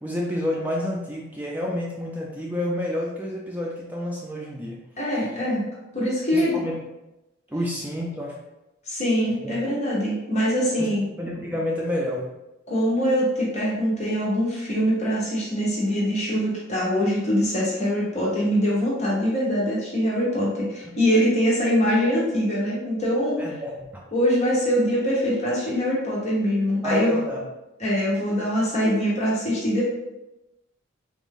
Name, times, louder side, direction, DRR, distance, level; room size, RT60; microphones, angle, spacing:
voice 1, 0.0-4.8 6.3-6.8 7.5-8.4 9.4-9.5 10.8-10.9 11.2-12.2 23.4-24.0 26.8-27.4, left 1 dB, 10° right, -3 dB, 0.4 m, -29 dB
voice 2, 5.0-5.7 5.9-6.6 8.9-11.1 12.7-23.4 24.1-27.2 27.8-29.8, equal, 35° left, -5 dB, 0.9 m, -23 dB
3.6 x 2.5 x 3.6 m, 0.95 s
head